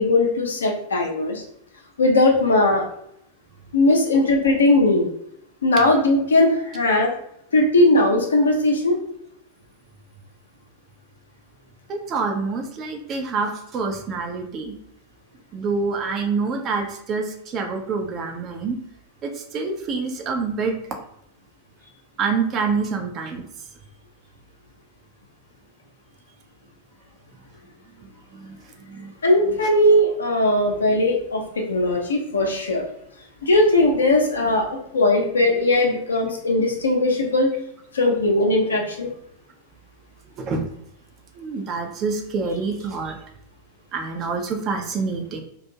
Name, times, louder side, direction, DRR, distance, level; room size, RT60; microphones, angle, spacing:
voice 1, 0.0-1.4 2.0-2.9 3.7-5.1 5.6-7.1 7.5-9.0 29.2-32.8 33.4-37.5 37.9-39.1, left 2 dB, 70° left, 1 dB, 0.5 m, -19 dB
voice 2, 11.9-14.8 15.5-18.8 19.2-20.8 22.2-23.7 28.0-29.1 29.5-29.6 40.4-40.7 41.3-43.2 43.9-45.4, right 4 dB, 30° right, 4 dB, 0.4 m, -27 dB
2.5 x 2.3 x 2.7 m, 0.72 s
figure-of-eight pair, 90°, 0 cm